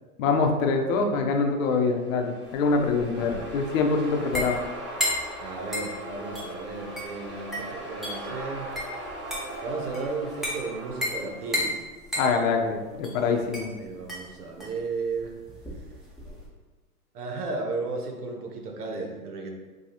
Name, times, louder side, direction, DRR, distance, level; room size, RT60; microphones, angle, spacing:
voice 1, 0.2-4.6 12.1-13.7, left 4 dB, 60° left, 3 dB, 0.7 m, -24 dB
sound 1, 1.9-11.7, right 1 dB, 25° right, 1.3 m, -39 dB
sound 2, 2.5-16.5, left 1 dB, ahead, 0.7 m, -35 dB
voice 2, 3.1-3.5 5.4-8.7 9.6-11.7 13.8-15.4 17.1-19.5, right 3 dB, 90° right, 2 dB, 0.8 m, -34 dB
4.8 x 2.3 x 2.8 m, 1.3 s
hypercardioid pair, 115°, 45 cm